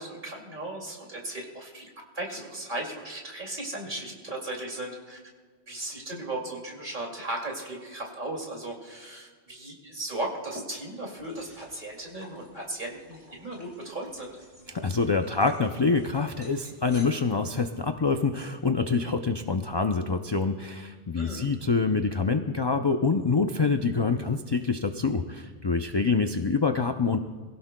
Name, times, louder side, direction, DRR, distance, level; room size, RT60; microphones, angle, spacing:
voice 1, 0.0-1.9 2.1-5.2 5.7-14.4 21.2-21.5, right 1 dB, 50° right, -1 dB, 2.7 m, -36 dB
sound 1, 11.2-17.0, equal, 20° right, 3.9 m, -54 dB
voice 2, 14.7-27.2, left 4 dB, 40° left, 7 dB, 0.3 m, -26 dB
23.0 x 16.0 x 2.2 m, 1.5 s
omnidirectional pair, 1.1 m